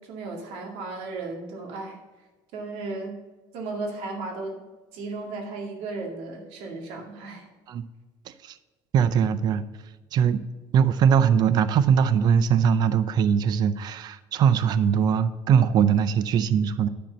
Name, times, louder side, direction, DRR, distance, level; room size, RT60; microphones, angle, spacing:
voice 1, 0.0-2.0 2.5-3.1 3.5-4.6 4.9-7.5, right 3 dB, 75° right, 1 dB, 2.1 m, -35 dB
voice 2, 8.3-8.6 8.9-9.6 10.1-10.4 10.7-16.9, right 7 dB, 40° right, 14 dB, 0.5 m, -21 dB
10.0 x 4.5 x 6.8 m, 1.2 s
cardioid pair, 155°, 10 cm